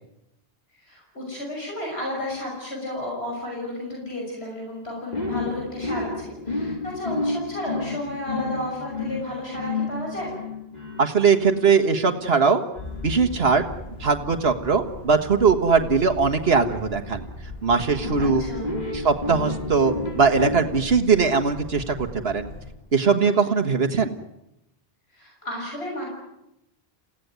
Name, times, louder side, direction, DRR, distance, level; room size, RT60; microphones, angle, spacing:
voice 1, 0.8-10.3 18.2-18.7 25.1-26.1, left 1 dB, 90° left, -1 dB, 6.7 m, -32 dB
sound 1, 5.1-17.3 18.0-20.6, left 2 dB, 45° left, 4.5 m, -32 dB
voice 2, 11.0-12.6 13.0-13.7 14.0-17.2 17.6-18.4 18.9-22.5 22.9-24.1, right 5 dB, 80° right, 5 dB, 1.8 m, -20 dB
sound 2, 12.8-22.7, left 1 dB, 75° left, 6.7 m, -39 dB
29.5 x 16.5 x 9.5 m, 0.86 s
omnidirectional pair, 1.0 m